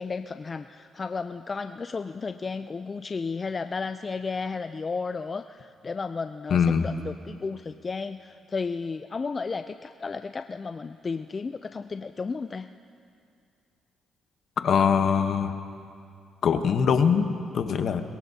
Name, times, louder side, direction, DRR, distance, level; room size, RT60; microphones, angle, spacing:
voice 1, 0.0-12.7, left 4 dB, 35° left, 9 dB, 0.4 m, -33 dB
voice 2, 6.5-6.9 14.6-15.5 16.4-18.0, left 6 dB, 60° left, 8 dB, 1.0 m, -22 dB
23.0 x 21.0 x 2.8 m, 2.4 s
cardioid pair, 90°, 0 cm